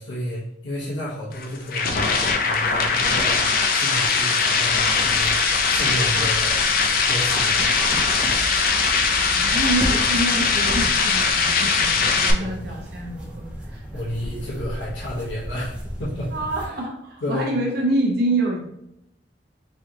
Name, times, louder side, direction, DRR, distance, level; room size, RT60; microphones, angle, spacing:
voice 1, 0.0-6.6 7.1-7.6 12.4-12.8 13.9-16.3 16.6-16.8 17.2-17.6, equal, 80° left, -7 dB, 1.0 m, -31 dB
sound 1, 1.3-12.3, left 5 dB, 50° left, 0.4 m, -21 dB
sound 2, 4.9-16.7, equal, 5° right, 0.7 m, -35 dB
voice 2, 9.3-13.8 16.3-18.6, right 1 dB, 60° right, 0 dB, 0.7 m, -26 dB
3.6 x 3.3 x 2.8 m, 0.80 s
head